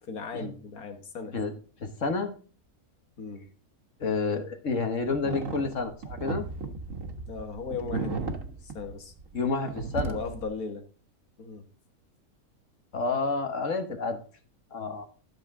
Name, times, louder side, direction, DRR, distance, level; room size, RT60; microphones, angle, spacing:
voice 1, 0.0-1.4 3.2-3.5 7.3-9.1 10.1-10.9 11.4-11.7, left 4 dB, 80° left, 1.9 m, -37 dB
voice 2, 1.8-2.3 4.0-6.4 9.3-10.2 12.9-14.2 14.7-15.1, left 4 dB, 60° left, 1.7 m, -29 dB
sound 1, 5.1-9.4 9.7-10.5, right 3 dB, 65° right, 1.7 m, -35 dB
13.0 x 6.8 x 3.7 m
omnidirectional pair, 1.5 m